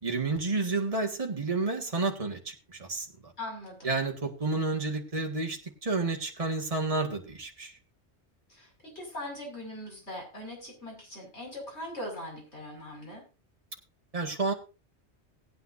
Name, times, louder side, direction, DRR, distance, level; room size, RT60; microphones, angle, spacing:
voice 1, 0.0-3.3 3.8-7.7 14.1-14.5, right 3 dB, 30° right, 1 dB, 1.9 m, -30 dB
voice 2, 3.4-3.9 8.5-13.2, left 1 dB, 75° left, -1 dB, 6.5 m, -41 dB
19.0 x 9.2 x 2.7 m, 0.31 s
omnidirectional pair, 1.1 m